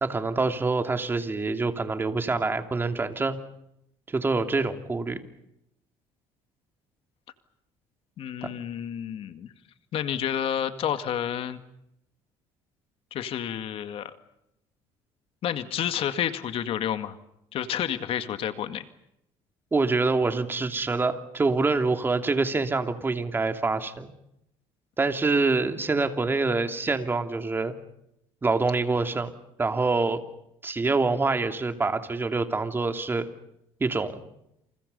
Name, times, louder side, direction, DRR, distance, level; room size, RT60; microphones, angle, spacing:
voice 1, 0.0-3.4 4.1-5.2 8.4-8.5 19.7-24.1 25.0-27.7 28.4-29.3 29.6-30.2 30.6-33.3 33.8-34.2, right 3 dB, 20° right, 7 dB, 2.8 m, -26 dB
voice 2, 8.2-9.5 9.9-11.6 13.1-14.1 15.4-17.2 17.5-18.9, left 9 dB, 55° left, 10 dB, 2.0 m, -30 dB
29.0 x 28.5 x 5.5 m, 0.78 s
cardioid pair, 125°, 11 cm